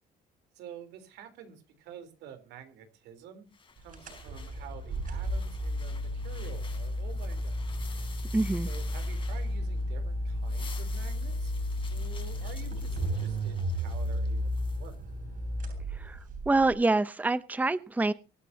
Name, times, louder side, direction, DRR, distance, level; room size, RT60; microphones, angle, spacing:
voice 1, 0.5-3.5 3.8-7.6 8.7-11.5 11.9-15.0, right 8 dB, 85° right, 9 dB, 3.7 m, -49 dB
sound 1, 3.5-9.9 10.3-15.0, left 5 dB, 30° left, 3.5 m, -51 dB
sound 2, 3.9-16.7, equal, 55° right, 7.5 m, -33 dB
voice 2, 8.3-8.7 15.9-18.1, right 2 dB, 10° right, 16 dB, 0.7 m, -26 dB
24.0 x 9.9 x 2.8 m, 0.32 s
cardioid pair, 110°, 17 cm